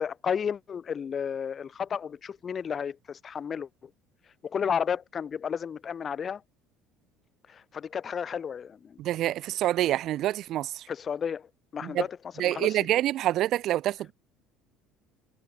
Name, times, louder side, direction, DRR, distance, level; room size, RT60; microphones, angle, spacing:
voice 1, 0.0-3.7 4.4-6.4 7.5-9.0 10.9-12.2 12.4-12.8, left 7 dB, 35° left, 1.1 m, -32 dB
voice 2, 9.0-10.8 11.8-12.0 12.4-14.1, right 13 dB, 55° right, 1.0 m, -27 dB
cardioid pair, 120°, 0 cm